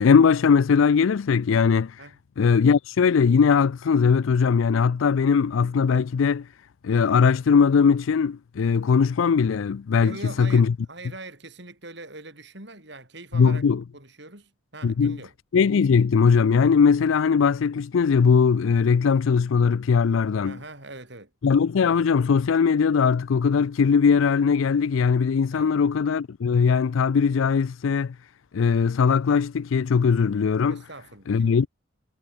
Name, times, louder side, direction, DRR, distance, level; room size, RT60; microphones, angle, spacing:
voice 1, 0.0-2.0 2.4-6.5 6.8-10.7 13.3-13.8 14.8-15.2 15.5-20.6 21.4-28.1 28.5-30.8 31.3-31.7, left 6 dB, 75° left, 0.4 m, -20 dB
voice 2, 10.0-13.6 13.9-15.3 20.4-21.3 25.5-25.7 30.7-31.6, right 2 dB, 55° right, 7.9 m, -42 dB
head